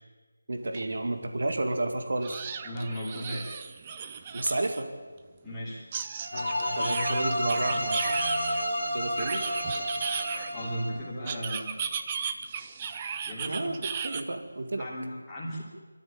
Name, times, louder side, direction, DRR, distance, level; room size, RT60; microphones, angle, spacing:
voice 1, 0.5-2.5 4.3-4.9 6.7-8.1 8.9-9.4 13.5-14.9, right 2 dB, 50° right, 6 dB, 2.3 m, -31 dB
sound 1, 0.7-0.8 1.2-1.3 2.2-4.8 5.9-8.6 9.2-10.7 11.2-14.2, right 6 dB, 15° right, 0.5 m, -35 dB
voice 2, 2.6-3.6 5.4-5.8 10.5-11.7 13.2-13.8 14.8-15.6, equal, 5° left, -10 dB, 3.2 m, -35 dB
sound 2, 6.2-11.0, right 1 dB, 75° right, 5.3 m, -32 dB
sound 3, 6.3-10.9, left 2 dB, 50° left, 0.7 m, -34 dB
23.0 x 13.5 x 8.9 m, 1.4 s
figure-of-eight pair, 180°, 0 cm